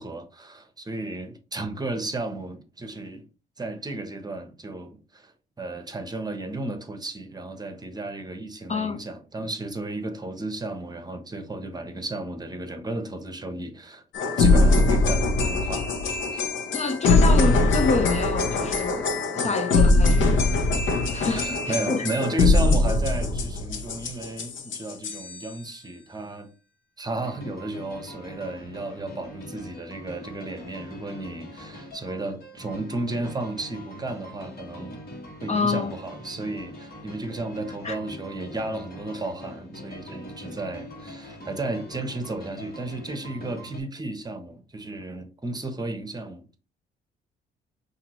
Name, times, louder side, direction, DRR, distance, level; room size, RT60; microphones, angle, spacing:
voice 1, 0.0-3.3 3.6-5.3 5.6-14.0 14.4-15.9 16.3-16.5 18.6-18.7 19.3-19.4 21.3-26.5 27.0-35.0 35.4-46.6, right 2 dB, 20° right, 0.9 m, -33 dB
sound 1, 14.1-25.5, left 3 dB, 75° left, 0.8 m, -22 dB
voice 2, 16.7-19.1 19.4-20.4 21.1-22.0 22.4-22.5 35.5-35.9 37.8-38.0, left 4 dB, 35° left, 0.6 m, -27 dB
sound 2, 27.2-43.8, left 1 dB, 50° left, 1.7 m, -43 dB
5.7 x 2.7 x 3.0 m
cardioid pair, 90°, 20 cm